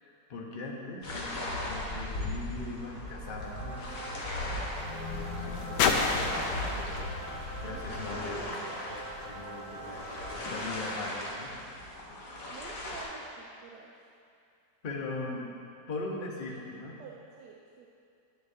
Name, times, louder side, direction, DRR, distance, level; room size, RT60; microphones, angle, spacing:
voice 1, 0.0-4.4 4.8-11.5 14.8-15.4 15.9-17.0, left 3 dB, 40° left, -2 dB, 0.9 m, -41 dB
sound 1, 1.0-13.0, left 1 dB, 55° left, 1.5 m, -38 dB
sound 2, 2.8-8.8 9.6-9.7, left 5 dB, 90° left, 1.2 m, -34 dB
sound 3, 3.3-11.6, right 3 dB, 40° right, 0.8 m, -46 dB
voice 2, 12.5-13.9 16.5-17.9, right 5 dB, 85° right, -1 dB, 1.2 m, -50 dB
10.5 x 8.2 x 2.7 m, 2.5 s
omnidirectional pair, 1.8 m